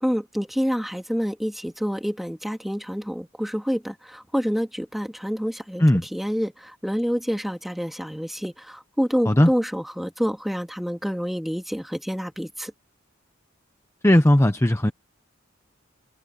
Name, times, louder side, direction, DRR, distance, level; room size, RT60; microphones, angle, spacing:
voice 1, 0.0-5.8 6.1-6.5 6.8-12.7, equal, ahead, 2.4 m, -27 dB
voice 2, 14.0-14.9, left 1 dB, 15° left, 0.9 m, -17 dB
head